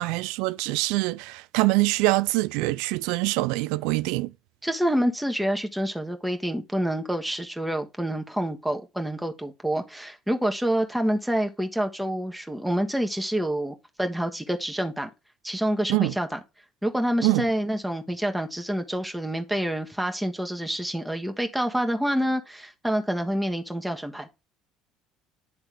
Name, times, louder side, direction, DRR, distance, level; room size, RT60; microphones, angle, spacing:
voice 1, 0.0-4.3 15.9-16.1 17.2-17.4, right 21 dB, 75° right, 0.3 m, -24 dB
voice 2, 4.6-15.1 15.4-16.4 16.8-24.3, equal, 5° right, 1.4 m, -27 dB
10.0 x 3.5 x 3.4 m
hypercardioid pair, 65°, 0 cm